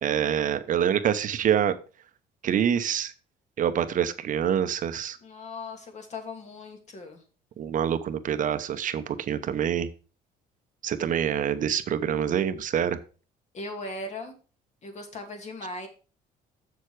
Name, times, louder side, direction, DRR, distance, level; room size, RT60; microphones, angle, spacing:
voice 1, 0.0-1.8 2.4-3.1 3.6-5.2 7.6-9.9 10.8-13.0, right 9 dB, 50° right, 11 dB, 0.9 m, -26 dB
voice 2, 5.2-7.2 13.5-14.3 14.8-15.9, left 2 dB, 45° left, 4 dB, 2.4 m, -38 dB
7.3 x 6.6 x 4.7 m, 0.36 s
cardioid pair, 110°, 17 cm